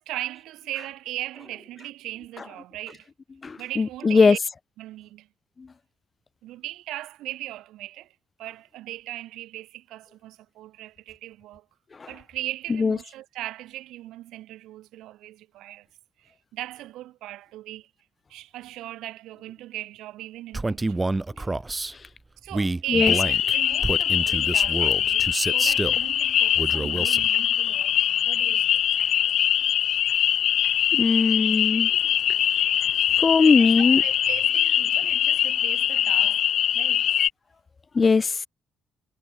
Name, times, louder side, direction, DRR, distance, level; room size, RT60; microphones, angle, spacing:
voice 1, 0.0-3.1 3.6-4.4 4.8-5.3 6.4-11.7 12.1-15.9 16.2-17.9 18.3-21.1 21.4-21.6 22.4-28.8 32.0-32.2 33.1-37.1, right 15 dB, 90° right, 3.1 m, -38 dB
voice 2, 3.4-4.4 5.6-5.7 12.0-12.1 12.8-13.0 22.9-23.1 30.9-31.9 33.2-34.0 37.9-38.5, left 4 dB, 35° left, 0.6 m, -20 dB
Male speech man speaking, 20.5-21.9 22.5-26.0 26.5-27.3, right 2 dB, 20° right, 0.7 m, -28 dB
sound 1, 22.9-37.3, left 10 dB, 70° left, 1.5 m, -22 dB
cardioid pair, 90°, 0 cm